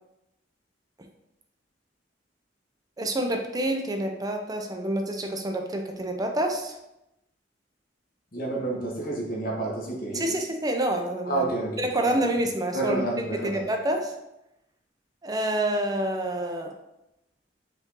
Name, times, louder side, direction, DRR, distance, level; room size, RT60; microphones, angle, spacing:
voice 1, 3.0-6.8 10.1-11.5 11.8-14.1 15.2-16.7, right 1 dB, 20° right, 3 dB, 0.5 m, -28 dB
voice 2, 8.3-10.3 11.3-12.1 12.7-13.6, right 2 dB, 55° left, -2 dB, 1.2 m, -29 dB
5.2 x 2.6 x 3.7 m, 0.89 s
head